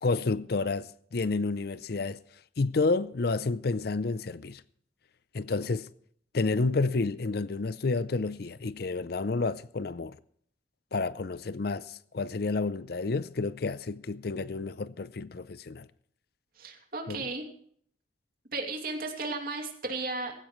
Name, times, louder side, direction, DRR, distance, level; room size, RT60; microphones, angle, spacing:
voice 1, 0.0-2.2 2.6-4.6 5.3-5.9 6.3-10.2 10.9-15.9 17.1-17.3, left 3 dB, 60° left, 0.6 m, -30 dB
voice 2, 16.6-17.4 18.5-20.3, right 3 dB, 55° right, 2.7 m, -34 dB
18.0 x 16.0 x 3.2 m
head